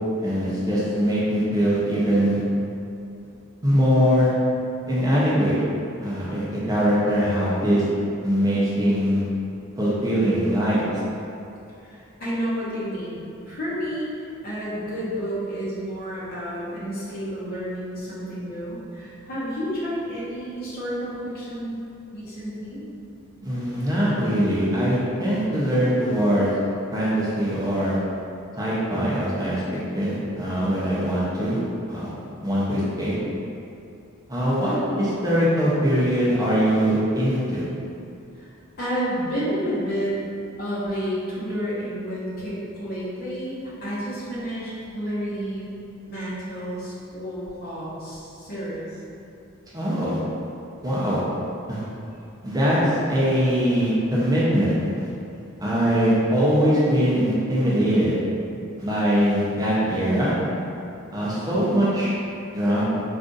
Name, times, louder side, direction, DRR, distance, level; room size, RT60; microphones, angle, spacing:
voice 1, 0.2-2.4 3.6-4.3 4.9-5.5 6.0-7.8 8.2-9.2 9.8-10.8 23.4-26.5 26.9-28.0 28.6-31.6 31.9-32.1 32.4-33.1 34.3-37.6 49.7-50.2 50.8-51.2 51.7-51.8 52.4-55.1 55.6-58.2 58.8-60.3 61.1-62.2 62.5-62.8, equal, 15° right, -8 dB, 0.5 m, -22 dB
voice 2, 11.8-14.1 14.4-21.8 22.1-22.8 38.3-38.5 38.8-40.2 40.6-45.7 46.1-49.0 51.8-51.9, equal, 45° left, -9 dB, 0.8 m, -30 dB
2.5 x 2.4 x 3.8 m, 2.7 s
head